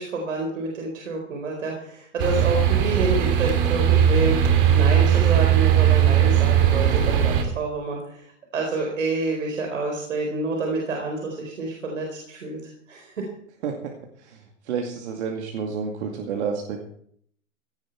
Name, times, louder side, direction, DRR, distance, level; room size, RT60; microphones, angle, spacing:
voice 1, 0.0-8.3 8.5-13.2, right 3 dB, 90° right, 1 dB, 4.4 m, -28 dB
sound 1, 2.2-7.4, right 9 dB, 45° right, 3.0 m, -18 dB
voice 2, 14.2-16.9, right 6 dB, 60° right, 2 dB, 2.4 m, -30 dB
17.0 x 11.5 x 4.6 m, 0.64 s
hypercardioid pair, 150°, 38 cm